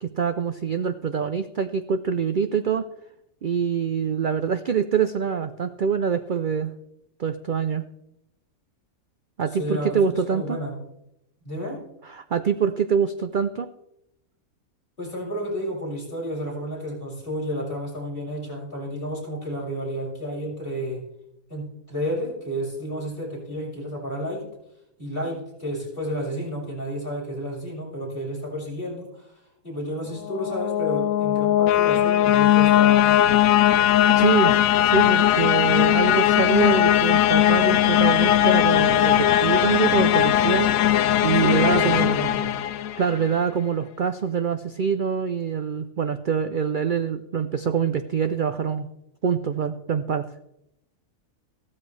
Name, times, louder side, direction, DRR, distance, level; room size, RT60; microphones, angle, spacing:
voice 1, 0.0-2.9 3.4-6.7 7.2-7.8 9.4-10.6 12.1-13.7 34.2-34.6 34.8-40.7 41.2-42.2 42.9-48.9 49.2-50.2, right 7 dB, 70° right, 10 dB, 0.4 m, -25 dB
voice 2, 9.5-10.8 11.4-11.8 15.0-21.0 21.5-24.5 25.0-29.3 29.6-33.5 37.6-37.7 41.3-42.5, equal, 35° left, -6 dB, 6.6 m, -31 dB
sound 1, 30.2-43.3, left 11 dB, 70° left, 1.0 m, -19 dB
15.5 x 13.0 x 3.2 m, 0.83 s
omnidirectional pair, 1.5 m